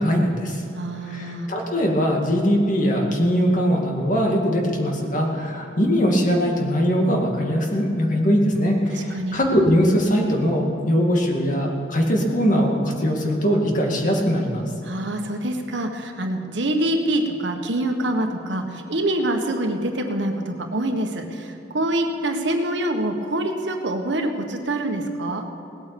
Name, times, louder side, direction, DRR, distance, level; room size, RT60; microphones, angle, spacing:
voice 1, 0.0-0.6 1.1-14.7, equal, 45° left, 0 dB, 2.2 m, -21 dB
voice 2, 0.7-1.5 8.9-9.4 14.8-25.4, right 1 dB, 80° right, 4 dB, 1.5 m, -25 dB
18.5 x 8.4 x 7.0 m, 2.8 s
head